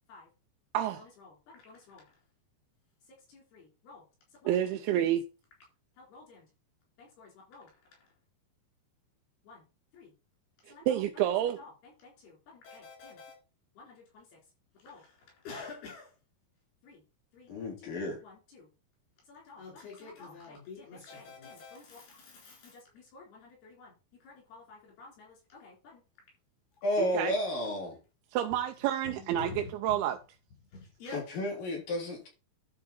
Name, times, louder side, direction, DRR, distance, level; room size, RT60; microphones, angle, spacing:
voice 1, 1.0-2.2 3.1-4.0 4.3-5.1 6.0-6.5 7.0-7.7 8.0-8.1 9.4-9.7 9.9-10.1 10.7-11.0 11.4-13.3 13.7-14.4 14.8-16.2 16.8-17.0 17.3-17.5 17.8-18.7 19.2-23.9 24.2-26.0 29.0-30.0 30.7-31.3, left 3 dB, 85° left, 6.0 m, -50 dB
voice 2, 4.5-5.2 10.7-11.6 27.0-27.4 28.3-30.2, right 11 dB, 90° right, 2.7 m, -29 dB
voice 3, 17.5-18.2 26.8-28.0 31.1-32.3, left 1 dB, 65° left, 4.6 m, -32 dB
11.5 x 4.8 x 4.2 m
omnidirectional pair, 4.4 m